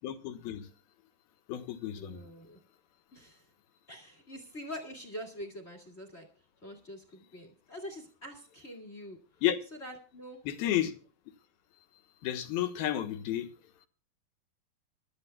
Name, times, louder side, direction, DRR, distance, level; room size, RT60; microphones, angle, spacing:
voice 1, 0.0-0.7 1.5-2.2 9.4-9.6 10.5-10.9 12.2-13.5, left 12 dB, 80° left, 3.1 m, -31 dB
voice 2, 2.0-2.6 3.1-3.4 3.9-6.3 6.6-9.2 9.7-10.4, equal, 25° left, 1.5 m, -45 dB
24.0 x 12.5 x 2.2 m
omnidirectional pair, 4.3 m